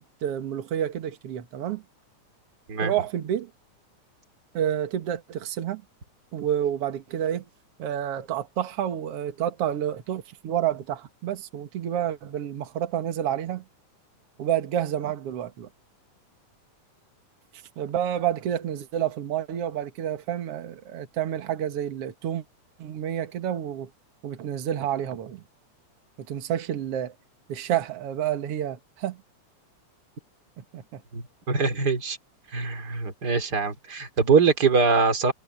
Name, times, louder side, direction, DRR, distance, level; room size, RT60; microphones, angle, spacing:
voice 1, 0.0-1.8 2.8-3.5 4.5-5.8 6.3-7.5 7.8-13.6 14.4-15.7 17.8-22.4 22.8-23.9 24.2-25.4 26.3-27.1 27.5-29.2 30.6-31.0, right 10 dB, 55° right, 2.3 m, -29 dB
voice 2, 31.1-32.2 32.5-35.3, right 5 dB, 30° right, 3.6 m, -23 dB
omnidirectional pair, 3.5 m